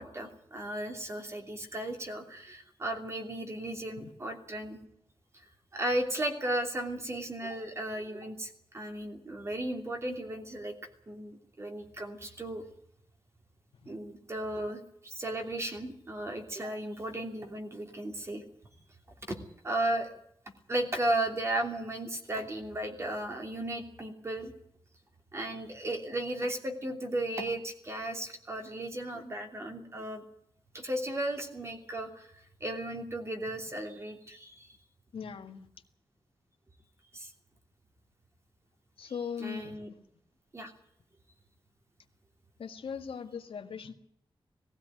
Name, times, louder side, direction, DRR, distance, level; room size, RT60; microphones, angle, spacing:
voice 1, 0.0-4.8 5.7-10.7 11.1-12.6 13.8-18.4 19.3-19.4 19.6-20.1 20.7-24.5 25.3-30.2 30.7-32.3 32.6-34.7 37.1-37.3 39.4-39.9 40.5-40.7, right 1 dB, 30° right, 3 dB, 3.0 m, -35 dB
voice 2, 35.1-35.7 39.0-40.0 42.6-43.9, left 6 dB, 85° left, 5 dB, 1.8 m, -39 dB
19.0 x 15.5 x 9.2 m, 0.71 s
wide cardioid pair, 180°, 9 cm